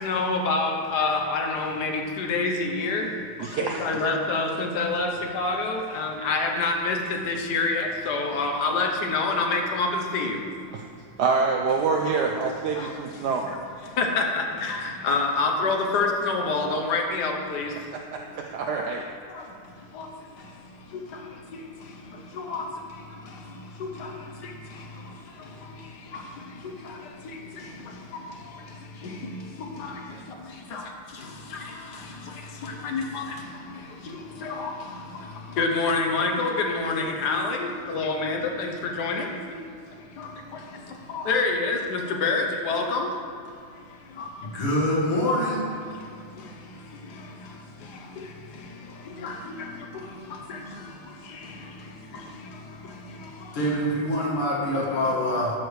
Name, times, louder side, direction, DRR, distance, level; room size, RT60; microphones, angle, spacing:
voice 1, 0.0-1.9 2.2-3.0 3.6-5.1 5.3-7.0 7.3-10.4 14.0-14.8 15.0-17.7 22.5-22.6 30.7-30.8 32.9-33.2 34.4-34.7 35.6-38.7 39.0-39.3 41.1-43.1 49.2-49.3, left 3 dB, 60° left, 2 dB, 1.2 m, -26 dB
voice 2, 3.4-3.9 10.7-10.8 11.2-13.4 17.9-19.0 30.1-30.2, right 4 dB, 85° right, 2 dB, 0.9 m, -26 dB
voice 3, 44.4-45.6 53.5-55.5, equal, 80° left, -5 dB, 2.2 m, -25 dB
12.0 x 6.4 x 3.2 m, 2.3 s
omnidirectional pair, 2.4 m